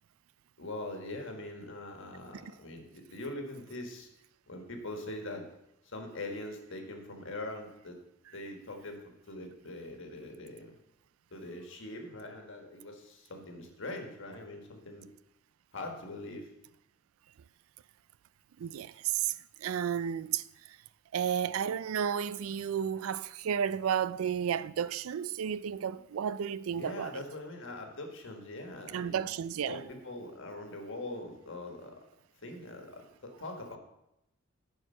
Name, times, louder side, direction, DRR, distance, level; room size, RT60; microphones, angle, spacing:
voice 1, 0.6-4.1 4.5-5.5 5.8-8.0 8.3-9.0 9.3-10.8 11.3-15.1 15.7-16.5 26.8-29.2 29.6-31.9 32.4-33.8, left 2 dB, 60° left, 1.5 m, -42 dB
voice 2, 18.6-20.4 21.1-27.2 28.9-29.9, right 8 dB, 75° right, 0.3 m, -32 dB
10.5 x 4.6 x 5.5 m
head